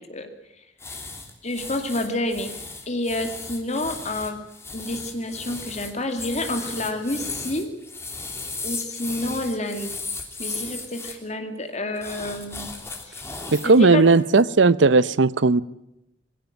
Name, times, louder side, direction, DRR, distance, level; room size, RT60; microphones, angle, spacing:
sound 1, 0.8-11.1 12.0-13.8 14.1-14.4, left 3 dB, 15° left, 3.0 m, -36 dB
voice 1, 1.4-2.5 2.9-4.4 4.7-7.7 8.6-9.9 10.4-12.7 13.1-13.2 13.8-14.0, left 1 dB, 40° left, 6 dB, 2.3 m, -29 dB
voice 2, 13.5-15.6, right 3 dB, 85° right, 18 dB, 0.7 m, -16 dB
21.5 x 16.5 x 9.1 m, 0.85 s
head